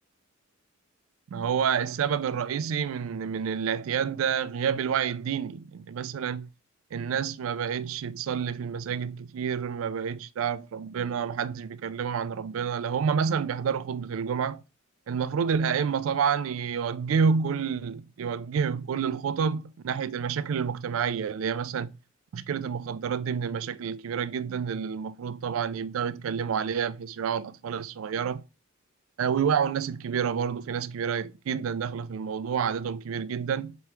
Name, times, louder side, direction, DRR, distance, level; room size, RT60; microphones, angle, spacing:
voice 1, 1.3-6.5 6.9-14.6 15.1-21.9 22.3-28.4 29.2-33.8, right 7 dB, 75° right, 0.3 m, -29 dB
4.3 x 3.1 x 3.4 m
head